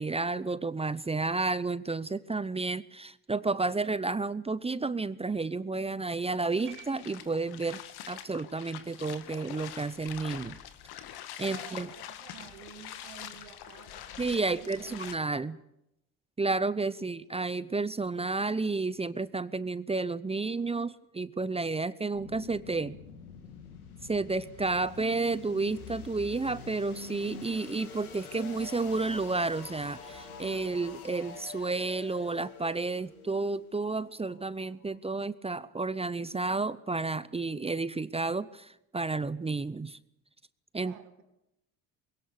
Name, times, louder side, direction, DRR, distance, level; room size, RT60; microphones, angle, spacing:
voice 1, 0.0-7.8 8.1-10.6 11.4-11.9 14.2-15.6 16.4-23.0 24.1-40.0 40.7-40.9, right 3 dB, 15° right, 17 dB, 0.7 m, -31 dB
sound 1, 6.4-15.2, left 11 dB, 60° left, 1.9 m, -45 dB
sound 2, 6.7-7.9, right 11 dB, 50° right, 1.9 m, -53 dB
voice 2, 11.4-15.1 17.0-17.1 40.8-41.2, right 10 dB, 80° right, 7 dB, 2.2 m, -51 dB
sound 3, 22.1-35.0, left 5 dB, 90° left, 2.3 m, -47 dB
21.5 x 17.5 x 8.6 m, 0.85 s
hypercardioid pair, 65°, 42 cm